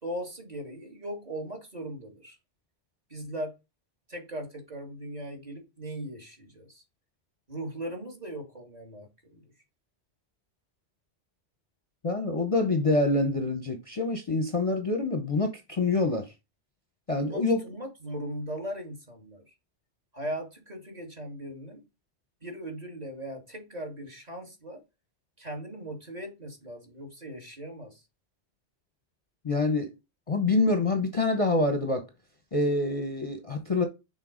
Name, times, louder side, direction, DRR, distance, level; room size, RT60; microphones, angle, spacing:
voice 1, 0.0-2.4 3.1-3.6 4.1-6.8 7.5-9.4 17.2-19.4 20.1-21.8 22.4-24.8 25.4-28.0, right 1 dB, 35° right, 2.1 m, -39 dB
voice 2, 12.0-16.3 17.1-17.7 29.4-29.9 30.3-32.1 32.5-33.9, left 2 dB, 35° left, 0.8 m, -26 dB
6.3 x 4.0 x 4.9 m
omnidirectional pair, 1.2 m